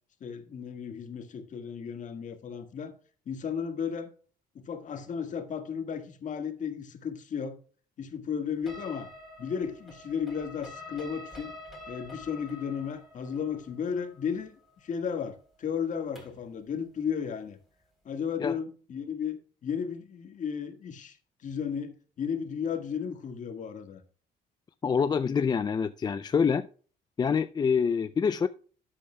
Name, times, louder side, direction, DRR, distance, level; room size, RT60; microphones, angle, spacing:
voice 1, 0.2-2.9 3.2-4.1 4.5-7.6 8.0-9.1 9.4-11.5 11.9-14.6 14.8-17.6 18.0-21.2 21.4-24.0, left 7 dB, 50° left, 1.6 m, -34 dB
sound 1, 8.7-16.5, left 2 dB, ahead, 3.5 m, -47 dB
voice 2, 24.8-26.7 27.2-28.5, left 6 dB, 25° left, 0.4 m, -26 dB
12.5 x 8.4 x 2.2 m
cardioid pair, 110°, 17 cm